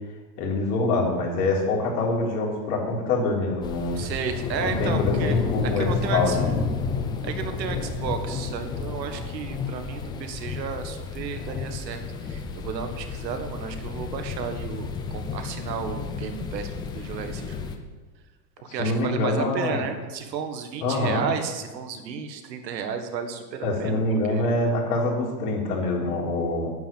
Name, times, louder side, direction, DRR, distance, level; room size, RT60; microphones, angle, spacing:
voice 1, 0.4-4.0 4.6-6.5 18.7-19.8 20.8-21.3 23.6-26.7, left 2 dB, 65° left, -2 dB, 4.0 m, -25 dB
sound 1, 3.6-17.8, left 5 dB, 10° left, 0.3 m, -31 dB
voice 2, 3.9-6.4 7.2-17.7 18.6-24.0 24.3-24.5, right 6 dB, 90° right, 7 dB, 1.8 m, -33 dB
9.3 x 7.3 x 8.8 m, 1.3 s
supercardioid pair, 130°, 49 cm